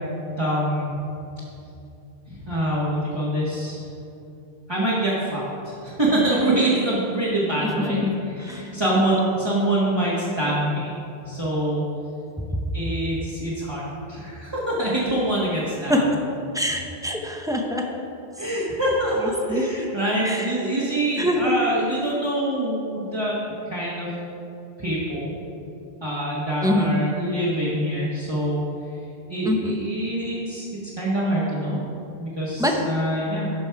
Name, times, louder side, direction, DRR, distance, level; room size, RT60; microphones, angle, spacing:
voice 1, 0.4-0.9 2.3-3.8 4.7-8.1 8.4-10.9 11.3-11.8 12.7-16.0 18.4-23.3 23.7-24.1 24.8-25.3 26.0-28.6 29.3-30.7 31.0-31.8 32.2-33.4, right 1 dB, 25° right, -8 dB, 1.4 m, -25 dB
voice 2, 16.5-17.8 19.2-19.7 20.2-20.5 21.2-21.5 26.6-27.0 29.4-29.8 32.6-32.7, left 1 dB, 5° right, 1 dB, 0.7 m, -24 dB
12.0 x 5.4 x 4.7 m, 2.7 s
omnidirectional pair, 1.1 m